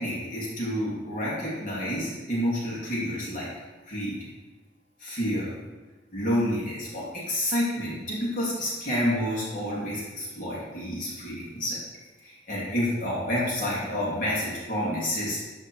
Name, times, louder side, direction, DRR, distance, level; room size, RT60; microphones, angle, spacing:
voice 1, 0.0-3.5 3.9-4.2 5.0-5.5 6.1-11.8 12.2-15.4, equal, 45° left, -7 dB, 3.2 m, -29 dB
13.0 x 4.9 x 4.7 m, 1.2 s
head